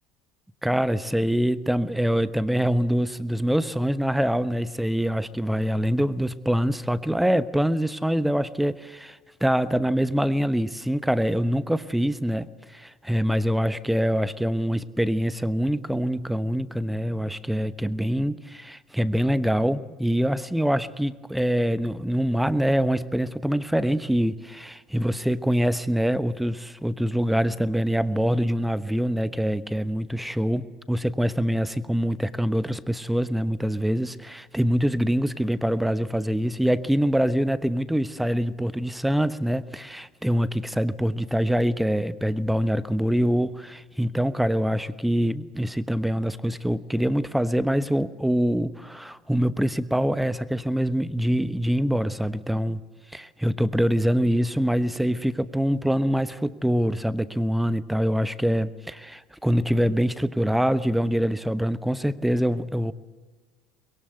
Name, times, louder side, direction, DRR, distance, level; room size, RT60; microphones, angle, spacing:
voice 1, 0.6-52.8 53.1-62.9, equal, 5° right, 15 dB, 1.1 m, -24 dB
23.5 x 22.5 x 8.0 m, 1.3 s
figure-of-eight pair, 65°, 3 cm